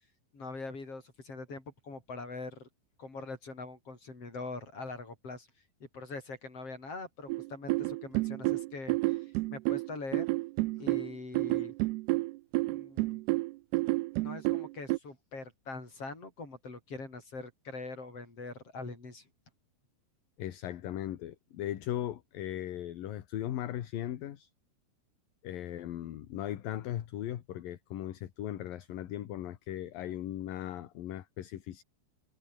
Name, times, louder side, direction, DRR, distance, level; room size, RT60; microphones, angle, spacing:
voice 1, 0.3-2.7 3.0-5.5 5.8-10.3 10.7-11.7 12.6-13.2 14.1-19.3, left 3 dB, 35° left, 8.0 m, -43 dB
sound 1, 7.3-15.0, right 21 dB, 80° right, 2.5 m, -30 dB
voice 2, 20.4-24.5 25.4-31.8, left 12 dB, 65° left, 2.9 m, -38 dB
omnidirectional pair, 4.9 m